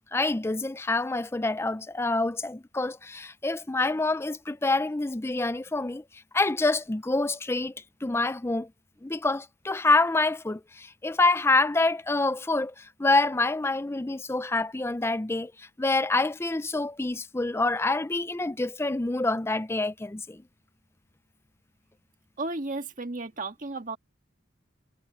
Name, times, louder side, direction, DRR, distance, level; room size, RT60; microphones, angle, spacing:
voice 1, 0.1-6.0 6.3-7.7 8.0-8.7 9.0-20.4, left 2 dB, 15° left, 0.4 m, -26 dB
voice 2, 22.4-24.0, right 2 dB, 40° right, 1.7 m, -33 dB
head